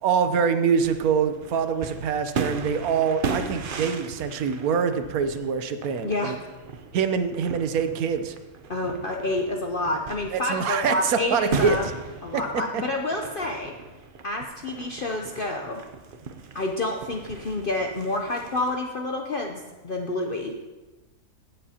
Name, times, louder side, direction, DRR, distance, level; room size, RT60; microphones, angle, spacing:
voice 1, 0.0-6.3 6.9-8.3 10.3-11.8 12.3-12.8, right 6 dB, 75° right, 9 dB, 1.2 m, -25 dB
sound 1, 0.8-18.8, right 5 dB, 50° right, 0.7 m, -37 dB
voice 2, 6.0-6.4 8.7-11.9 12.2-13.7 14.2-15.8 16.5-20.5, left 2 dB, 50° left, 2 dB, 0.7 m, -28 dB
16.0 x 7.5 x 2.8 m, 1.2 s
omnidirectional pair, 1.6 m